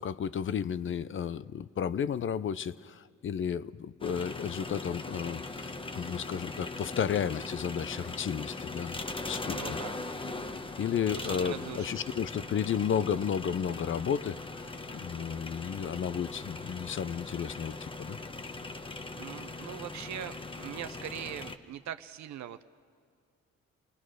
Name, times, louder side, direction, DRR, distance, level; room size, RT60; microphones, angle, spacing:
voice 1, 0.0-9.0 9.3-9.8 10.8-18.2, left 8 dB, 40° left, 18 dB, 0.6 m, -33 dB
sound 1, 4.0-21.6, left 3 dB, 15° left, 1.0 m, -40 dB
voice 2, 9.4-10.0 11.1-12.1 19.1-22.6, right 10 dB, 65° right, 11 dB, 0.7 m, -42 dB
29.5 x 19.0 x 6.3 m, 2.1 s
cardioid pair, 90°, 30 cm